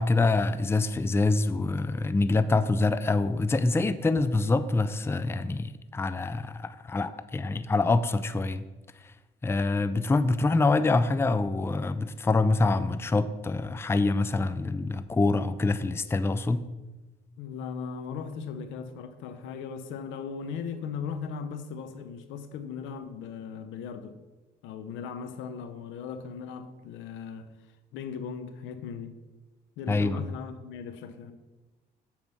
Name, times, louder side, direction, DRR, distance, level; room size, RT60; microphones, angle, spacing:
voice 1, 0.0-8.6 9.4-16.6 29.9-30.2, left 3 dB, 15° left, 13 dB, 0.4 m, -25 dB
voice 2, 17.4-24.2 24.6-27.5 27.9-29.2 29.8-31.3, left 6 dB, 85° left, 9 dB, 0.7 m, -38 dB
7.2 x 4.6 x 5.3 m, 1.1 s
supercardioid pair, 70°, 19 cm